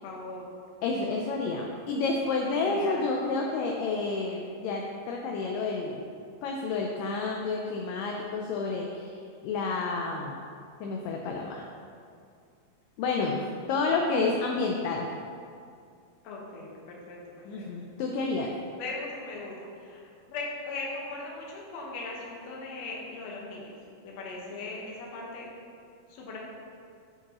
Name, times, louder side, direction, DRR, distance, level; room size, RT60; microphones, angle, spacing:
voice 1, 0.0-0.4 2.6-3.0 16.2-17.2 17.6-17.7 18.8-20.0 20.3-23.7 24.0-25.5 26.1-26.4, left 3 dB, 60° left, -3 dB, 1.9 m, -39 dB
voice 2, 0.8-6.0 6.4-9.1 9.4-10.4 10.8-11.7 13.0-15.1 17.4-18.5, left 3 dB, 80° left, 0 dB, 2.1 m, -30 dB
9.2 x 7.4 x 3.0 m, 2.4 s
omnidirectional pair, 4.4 m